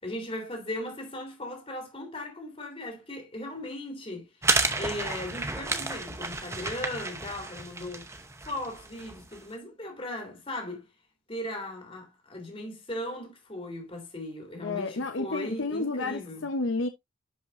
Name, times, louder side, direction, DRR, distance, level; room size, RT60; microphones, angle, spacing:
voice 1, 0.0-4.3 4.7-8.1 8.5-10.9 11.3-16.5, left 1 dB, 25° left, 3.0 m, -37 dB
sound 1, 4.4-9.4, right 3 dB, 15° right, 0.7 m, -31 dB
voice 2, 14.6-16.9, left 3 dB, 70° left, 0.8 m, -31 dB
10.5 x 5.6 x 2.5 m
head